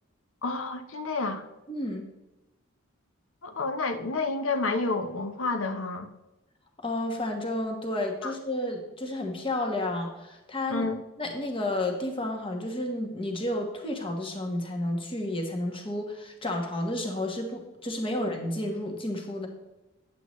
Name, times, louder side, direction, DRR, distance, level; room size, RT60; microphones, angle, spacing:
voice 1, 0.4-1.4 3.4-6.1 8.2-8.3 10.7-11.0, left 3 dB, 75° left, 7 dB, 0.8 m, -29 dB
voice 2, 1.7-2.1 6.8-10.9 11.2-19.5, left 1 dB, 25° left, 2 dB, 1.2 m, -31 dB
9.5 x 8.1 x 3.1 m, 1.0 s
head